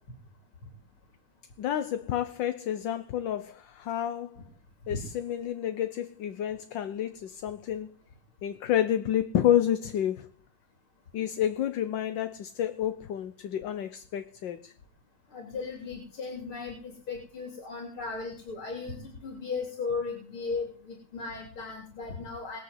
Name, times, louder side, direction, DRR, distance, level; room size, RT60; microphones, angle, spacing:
voice 1, 1.6-4.4 4.9-7.9 8.4-10.3 11.1-14.7, left 10 dB, 65° left, 1.5 m, -29 dB
voice 2, 15.3-22.6, left 4 dB, 90° left, 4.1 m, -36 dB
21.0 x 7.2 x 8.1 m
omnidirectional pair, 2.2 m